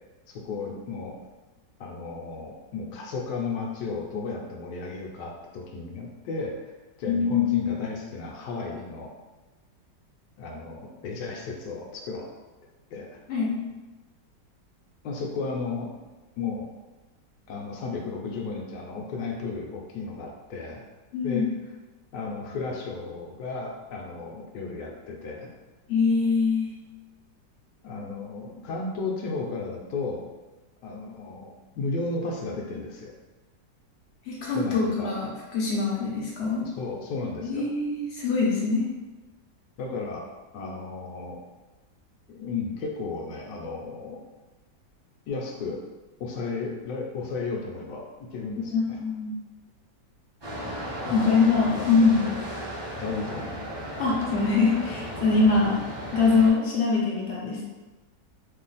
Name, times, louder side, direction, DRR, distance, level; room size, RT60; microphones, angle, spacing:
voice 1, 0.3-1.2 1.8-6.7 7.0-9.1 10.4-12.3 12.9-13.2 15.0-15.9 16.4-16.7 17.5-20.8 21.2-21.5 22.1-25.5 27.8-30.3 30.8-33.1 34.5-35.1 36.6-37.7 39.8-40.3 40.5-41.4 42.3-44.2 45.3-45.8 46.2-49.0 51.0-51.3 51.8-52.0 53.0-53.5, left 4 dB, 75° left, 0 dB, 1.2 m, -34 dB
voice 2, 7.0-7.8 13.3-13.6 21.1-21.5 25.9-26.7 34.3-36.6 37.4-38.8 48.7-49.4 51.1-52.2 54.0-55.8 56.1-57.6, left 4 dB, 55° left, -4 dB, 0.7 m, -23 dB
sound 1, 50.4-56.5, equal, 35° right, 0.4 m, -35 dB
3.0 x 2.4 x 3.9 m, 1.2 s
omnidirectional pair, 1.9 m